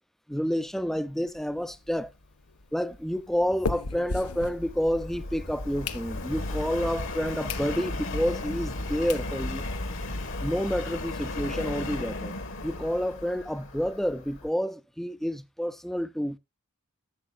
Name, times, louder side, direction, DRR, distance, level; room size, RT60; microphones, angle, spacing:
voice 1, 0.3-2.1 2.7-9.7 10.4-12.3 12.6-16.4, equal, ahead, 0.4 m, -29 dB
sound 1, 1.3-5.2 5.6-6.5 7.0-7.1 7.5-7.7 8.1-8.2 8.8-8.9 9.1-9.3 9.7-9.8 10.0-10.1 10.4-10.5 10.8-12.0, left 3 dB, 90° left, 0.9 m, -37 dB
Subway metro underground, 3.2-14.5, left 2 dB, 60° left, 1.3 m, -35 dB
15.0 x 7.5 x 2.3 m
head